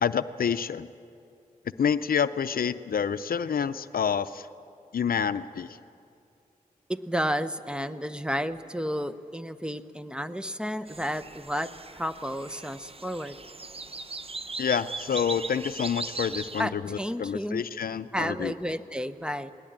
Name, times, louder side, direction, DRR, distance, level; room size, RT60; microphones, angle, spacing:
voice 1, 0.0-0.9 1.8-4.5 4.9-5.8 14.6-18.5, left 7 dB, 85° left, 13 dB, 0.5 m, -28 dB
voice 2, 6.9-13.4 16.6-17.6 18.1-19.5, equal, 5° right, 11 dB, 0.9 m, -32 dB
sound 1, 10.9-16.6, right 3 dB, 40° right, 0.8 m, -39 dB
20.0 x 19.0 x 8.8 m, 2.6 s
cardioid pair, 45°, 15 cm